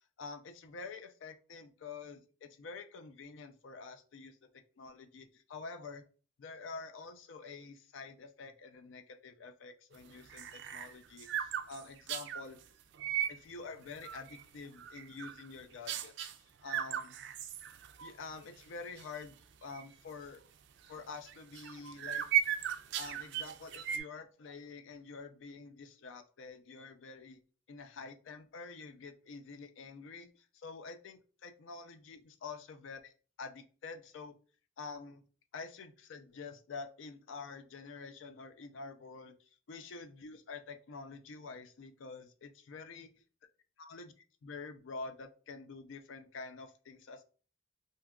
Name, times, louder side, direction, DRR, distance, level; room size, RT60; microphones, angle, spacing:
voice 1, 0.2-4.4 4.8-6.0 6.4-12.6 13.3-16.3 16.6-17.1 18.0-19.4 19.6-20.4 20.9-22.3 23.0-27.4 27.7-33.1 33.4-34.3 34.8-35.2 35.5-39.3 39.7-43.1 43.8-44.1 44.4-47.2, left 4 dB, 70° left, 7 dB, 0.4 m, -47 dB
sound 1, 10.0-12.4 12.9-13.4 13.8-14.4 14.8-15.5 15.9-16.3 16.7-18.1 18.5-18.6 19.0-19.2 19.7-19.8 21.3-24.0, right 10 dB, 60° right, 0.3 m, -36 dB
2.7 x 2.3 x 3.5 m, 0.39 s
head